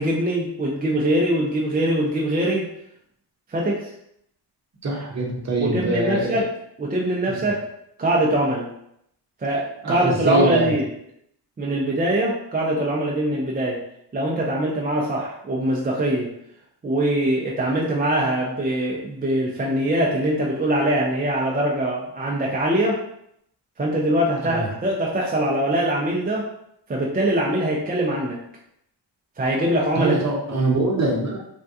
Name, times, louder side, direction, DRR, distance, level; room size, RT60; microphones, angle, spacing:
voice 1, 0.0-2.7 3.5-3.9 5.6-6.5 6.8-7.6 8.0-8.7 9.4-10.9 11.6-13.8 14.1-16.3 16.8-23.0 23.8-26.5 26.9-28.4 29.4-30.1, right 1 dB, 20° right, -3 dB, 0.4 m, -22 dB
voice 2, 4.8-6.4 7.3-7.5 9.8-10.7 24.4-24.6 29.9-31.4, right 2 dB, 40° right, -1 dB, 0.9 m, -23 dB
3.4 x 2.3 x 2.6 m, 0.76 s
cardioid pair, 85°, 43 cm